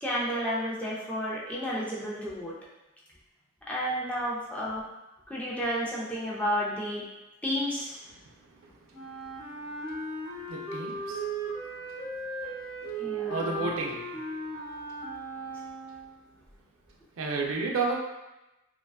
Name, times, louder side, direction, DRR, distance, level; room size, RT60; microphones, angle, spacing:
voice 1, 0.0-2.5 3.7-4.8 5.3-7.0 7.4-7.9 13.0-13.7, equal, 5° left, -6 dB, 0.4 m, -31 dB
Wind instrument woodwind instrument, 8.9-16.3, right 2 dB, 75° left, 0.8 m, -37 dB
voice 2, 10.5-11.2 13.3-14.0 17.2-18.0, right 4 dB, 90° right, 0 dB, 0.4 m, -30 dB
2.4 x 2.2 x 2.3 m, 0.97 s
head